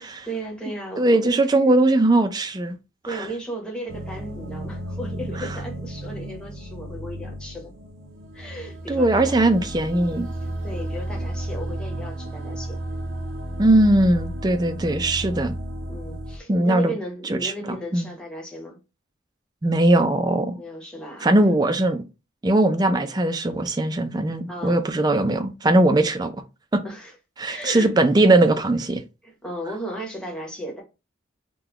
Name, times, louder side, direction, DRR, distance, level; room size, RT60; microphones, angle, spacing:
voice 1, 0.0-1.5 3.0-7.7 8.3-9.6 10.3-12.8 15.9-18.8 20.6-21.3 24.5-24.8 26.0-26.2 26.8-27.1 27.5-27.9 29.2-30.8, right 1 dB, 5° left, 0.9 m, -35 dB
voice 2, 1.0-2.8 3.1-3.3 8.9-10.3 13.6-15.5 16.5-16.9 17.3-18.1 19.6-20.6 21.2-22.0 22.4-26.4 26.7-26.8 27.4-29.0, right 2 dB, 20° right, 0.4 m, -20 dB
sound 1, 3.9-16.4, right 1 dB, 80° right, 0.6 m, -33 dB
3.8 x 2.2 x 2.9 m
head